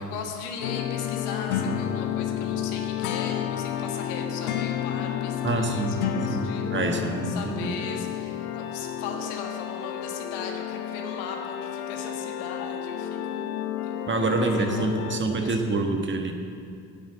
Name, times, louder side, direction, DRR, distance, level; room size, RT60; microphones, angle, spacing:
voice 1, 0.0-14.0 14.4-15.8, left 5 dB, 70° left, 2 dB, 1.8 m, -39 dB
sound 1, 0.6-15.2, left 9 dB, 90° left, 0.8 m, -31 dB
voice 2, 5.4-6.0 6.3-7.7 14.1-16.3, right 3 dB, 25° right, 4 dB, 1.5 m, -26 dB
9.8 x 8.1 x 7.6 m, 2.3 s
hypercardioid pair, 70°, 43 cm